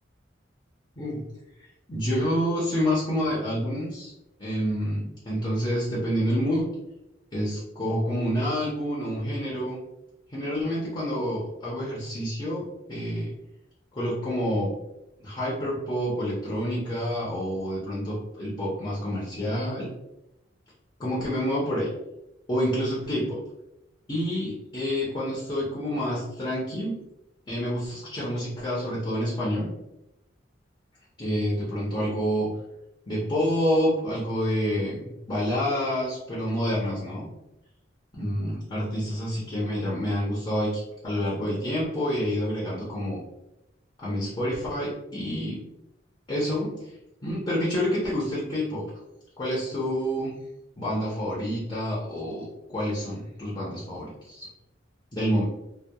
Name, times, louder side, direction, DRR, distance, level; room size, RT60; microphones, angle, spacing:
voice 1, 1.9-4.1 4.4-6.6 7.3-9.8 10.3-12.6 12.9-13.3 13.9-14.7 15.2-19.9 21.0-21.9 22.5-23.4 24.1-26.9 27.5-29.7 31.2-32.5 33.1-35.0 35.3-37.3 38.1-43.2 44.0-45.6 46.3-46.9 47.2-48.8 49.4-50.3 50.8-54.5 55.1-55.4, equal, 25° left, -7 dB, 0.6 m, -28 dB
2.8 x 2.1 x 2.2 m, 0.91 s
head